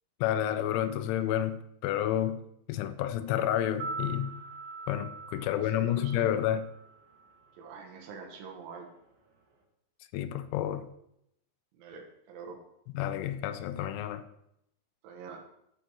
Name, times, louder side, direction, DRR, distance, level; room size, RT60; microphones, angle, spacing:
voice 1, 0.2-2.4 2.7-4.3 4.9-6.7 10.1-10.9 12.9-14.2, left 11 dB, 85° left, 2.9 m, -30 dB
sound 1, 3.7-7.8 8.1-8.2, right 3 dB, 65° right, 1.7 m, -43 dB
voice 2, 5.5-6.4 7.6-8.9 11.7-12.6 15.0-15.4, right 5 dB, 90° right, 3.5 m, -45 dB
13.0 x 4.5 x 3.0 m
omnidirectional pair, 5.3 m